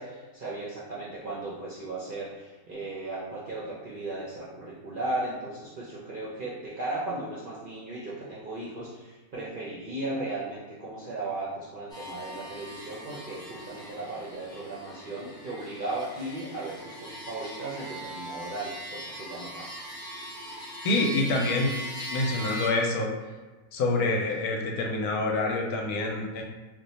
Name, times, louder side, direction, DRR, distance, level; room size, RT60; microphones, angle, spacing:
voice 1, 0.0-19.7, right 2 dB, 60° right, -7 dB, 0.5 m, -36 dB
sound 1, 11.9-22.7, equal, 5° left, 0.5 m, -40 dB
voice 2, 20.8-21.7 22.1-23.1 23.7-26.4, left 2 dB, 85° left, 1 dB, 1.1 m, -26 dB
2.6 x 2.2 x 4.0 m, 1.3 s
omnidirectional pair, 1.6 m